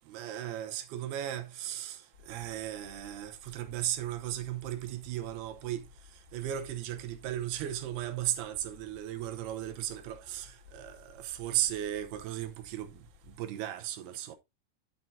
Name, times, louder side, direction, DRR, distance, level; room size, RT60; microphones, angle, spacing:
voice 1, 0.1-5.9 6.3-14.4, right 12 dB, 75° right, 2.8 m, -36 dB
sound 1, 2.1-13.4, left 8 dB, 65° left, 4.7 m, -57 dB
11.0 x 6.0 x 2.7 m
omnidirectional pair, 4.8 m